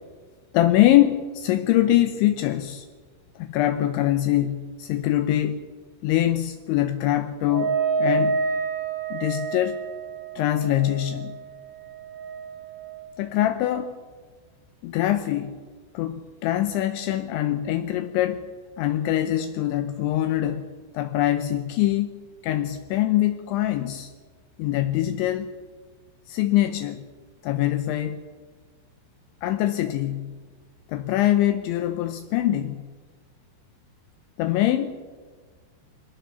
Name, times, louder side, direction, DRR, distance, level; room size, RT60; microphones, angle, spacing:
voice 1, 0.5-2.9 3.4-5.6 6.0-8.4 9.1-9.8 10.4-11.4 13.2-13.9 14.8-15.5 15.9-18.5 18.8-24.1 24.6-25.5 26.3-27.0 27.4-28.2 29.4-30.4 30.9-32.9 34.4-35.0, left 13 dB, 80° left, 3.0 m, -23 dB
Wind instrument woodwind instrument, 7.5-13.1, right 5 dB, 55° right, 5.1 m, -29 dB
22.5 x 17.5 x 7.0 m
omnidirectional pair, 5.5 m